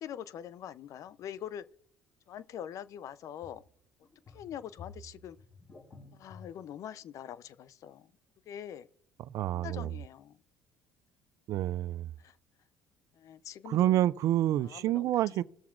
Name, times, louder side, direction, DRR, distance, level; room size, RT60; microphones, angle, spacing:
voice 1, 0.0-1.7 2.3-3.6 4.3-5.4 6.1-8.1 8.5-8.9 9.5-10.4 12.2-12.4 13.1-14.0 14.6-15.1, left 10 dB, 55° left, 0.5 m, -44 dB
sound 1, 1.1-1.2 3.4-3.7 4.0-6.5, left 4 dB, 30° left, 4.7 m, -52 dB
voice 2, 9.2-9.9 11.5-12.1 13.7-15.4, right 13 dB, 60° right, 0.4 m, -28 dB
19.5 x 6.9 x 2.5 m
hypercardioid pair, 70°, 6 cm